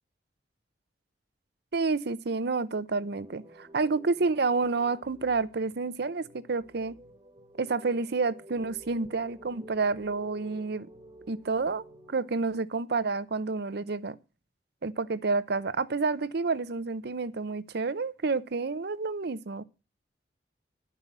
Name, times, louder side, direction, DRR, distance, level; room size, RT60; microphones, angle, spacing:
voice 1, 1.7-6.9 7.6-10.9 11.3-11.8 12.1-14.2 14.8-19.6, right 4 dB, 65° right, 0.7 m, -29 dB
sound 1, 3.1-12.3, equal, 25° right, 1.4 m, -52 dB
11.5 x 5.5 x 7.3 m
head